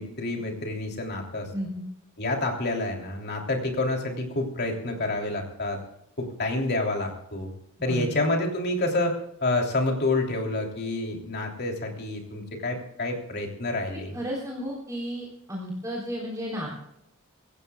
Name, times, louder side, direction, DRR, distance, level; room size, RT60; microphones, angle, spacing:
voice 1, 0.0-1.5 2.2-5.8 6.2-7.5 7.8-14.1, left 2 dB, 50° left, 2 dB, 3.2 m, -28 dB
voice 2, 1.5-1.8 7.9-8.1 14.1-16.7, equal, 15° right, -4 dB, 3.8 m, -33 dB
24.0 x 16.5 x 2.4 m, 0.78 s
head